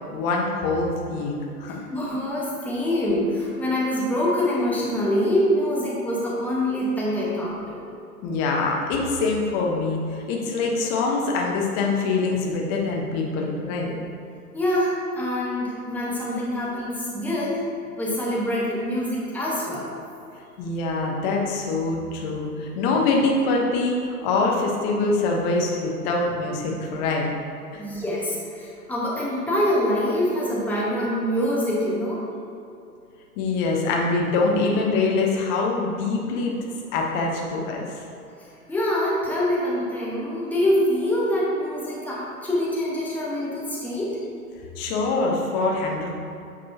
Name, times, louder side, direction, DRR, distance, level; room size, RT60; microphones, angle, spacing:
voice 1, 0.1-1.3 1.6-1.8 8.2-13.9 20.6-27.3 27.7-27.8 33.4-36.6 36.9-37.9 44.8-46.2, left 3 dB, 30° left, 0 dB, 1.1 m, -24 dB
voice 2, 1.7-7.8 14.5-17.6 18.0-19.9 27.8-32.2 38.4-44.1, left 1 dB, 5° left, -7 dB, 1.2 m, -25 dB
9.2 x 5.3 x 2.8 m, 2.6 s
figure-of-eight pair, 110°, 46 cm